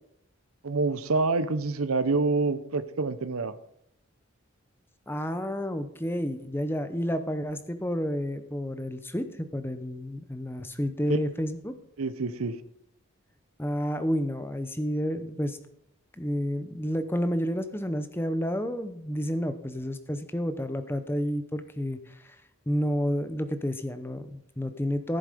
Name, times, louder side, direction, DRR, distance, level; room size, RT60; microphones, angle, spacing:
voice 1, 0.6-3.5 11.1-11.2 12.0-12.5, right 3 dB, 90° right, 13 dB, 0.8 m, -27 dB
voice 2, 5.1-11.8 13.6-15.6 16.2-22.4 22.7-25.2, equal, 10° left, 10 dB, 0.7 m, -30 dB
14.5 x 7.9 x 5.1 m, 0.76 s
head